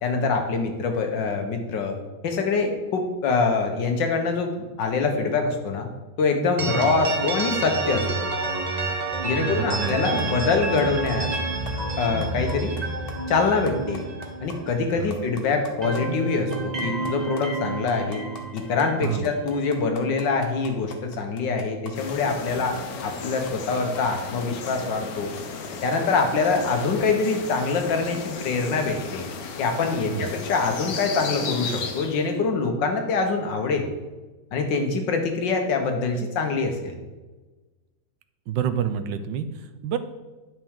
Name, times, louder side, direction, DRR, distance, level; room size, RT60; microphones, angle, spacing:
voice 1, 0.0-2.0 2.2-5.9 6.2-8.3 9.2-11.3 12.0-12.7 13.3-14.1 14.4-18.2 18.5-25.3 25.8-29.2 29.6-33.9 34.5-37.0, left 4 dB, 80° left, 4 dB, 1.7 m, -24 dB
sound 1, 6.6-15.3 15.6-19.7, right 3 dB, 40° right, 0.5 m, -29 dB
voice 2, 9.4-10.2 15.0-15.1 19.0-19.3 30.0-30.3 38.5-40.0, right 8 dB, 90° right, 11 dB, 1.3 m, -28 dB
sound 2, 9.9-10.2 10.5-11.4 11.7-11.8 12.0-12.8 13.1-13.2 13.5-14.5 14.8-14.9 15.1-16.0 16.3-24.7 25.1-26.3 26.5-26.6, left 5 dB, 40° left, 0.9 m, -41 dB
sound 3, 21.9-32.4, left 5 dB, 60° left, 1.2 m, -35 dB
10.0 x 5.9 x 3.6 m, 1.2 s
omnidirectional pair, 2.0 m